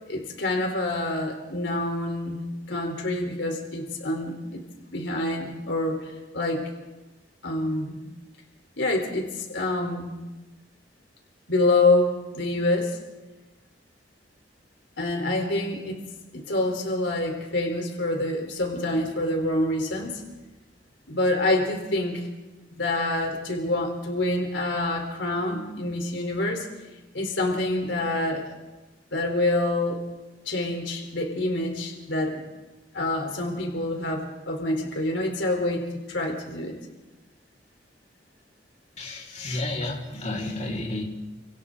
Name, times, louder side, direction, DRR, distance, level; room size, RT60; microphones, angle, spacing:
voice 1, 0.1-2.4 2.7-4.6 4.9-6.6 7.4-8.0 8.8-10.2 11.5-13.0 15.0-16.0 16.3-20.2 21.1-22.3 22.7-26.7 27.1-28.5 29.1-30.0 30.5-32.4 32.9-36.8, left 2 dB, 85° left, 1 dB, 3.9 m, -26 dB
voice 2, 39.0-41.0, left 2 dB, 40° left, -3 dB, 4.5 m, -31 dB
30.0 x 26.0 x 3.9 m, 1.1 s
head